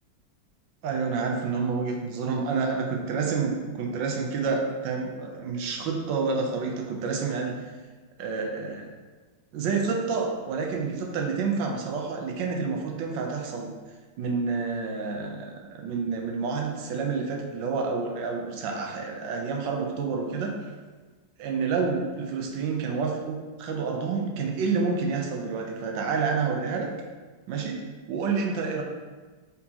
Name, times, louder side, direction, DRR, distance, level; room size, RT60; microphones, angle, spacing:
voice 1, 0.8-7.6 8.2-8.9 9.5-13.7 14.2-20.6 21.4-26.9 27.5-27.8 28.1-28.8, right 4 dB, 75° right, 1 dB, 1.3 m, -29 dB
4.5 x 4.0 x 2.8 m, 1.3 s
omnidirectional pair, 2.2 m